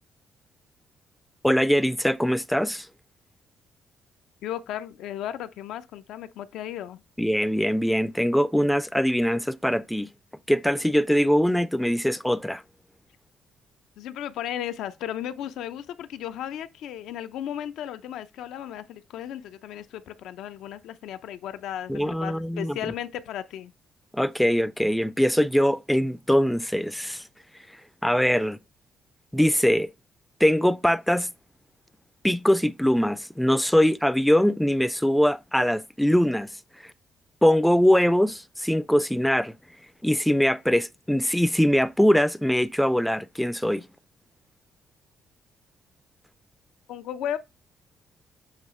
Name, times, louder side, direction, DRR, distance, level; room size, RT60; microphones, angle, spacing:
voice 1, 1.4-2.9 7.2-10.1 10.5-12.6 21.9-22.9 24.1-27.2 28.0-28.6 29.3-29.9 30.4-31.3 32.2-36.5 37.4-39.5 40.0-43.8, equal, ahead, 0.4 m, -22 dB
voice 2, 4.4-7.0 14.0-23.7 46.9-47.4, left 11 dB, 85° left, 0.5 m, -35 dB
7.4 x 3.1 x 4.8 m
cardioid pair, 90°, 0 cm